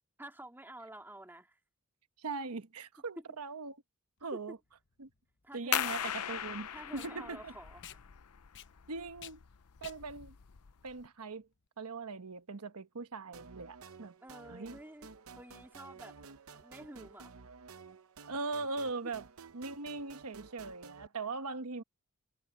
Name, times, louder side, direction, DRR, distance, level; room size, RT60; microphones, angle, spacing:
voice 1, 0.2-1.6 3.2-3.3 4.3-4.4 5.4-5.9 6.7-7.8 14.2-16.2 16.5-17.3, right 1 dB, 10° right, 2.4 m, -50 dB
voice 2, 2.2-3.8 4.2-4.6 5.0-5.1 5.5-7.5 8.9-9.4 9.8-10.4 10.8-11.5 11.8-14.1 14.5-14.7 18.3-19.3 19.5-21.8, right 3 dB, 90° right, 1.1 m, -40 dB
Packing tape duct tape, 4.2-11.7, left 10 dB, 55° left, 1.1 m, -55 dB
sound 1, 5.7-11.1, left 10 dB, 90° left, 0.7 m, -39 dB
sound 2, 13.3-21.1, right 5 dB, 70° right, 0.8 m, -53 dB
head